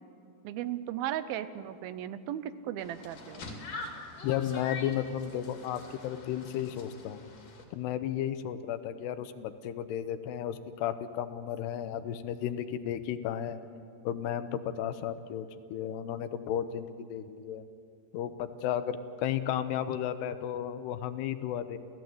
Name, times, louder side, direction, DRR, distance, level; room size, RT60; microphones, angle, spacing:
voice 1, 0.4-3.5, right 11 dB, 75° right, 13 dB, 2.4 m, -36 dB
sound 1, 2.8-7.6, left 3 dB, 55° left, 4.0 m, -44 dB
voice 2, 4.2-7.2 7.7-13.6 14.0-17.7 18.1-21.8, left 10 dB, 80° left, 11 dB, 3.0 m, -33 dB
29.5 x 16.0 x 8.0 m, 2.6 s
omnidirectional pair, 4.8 m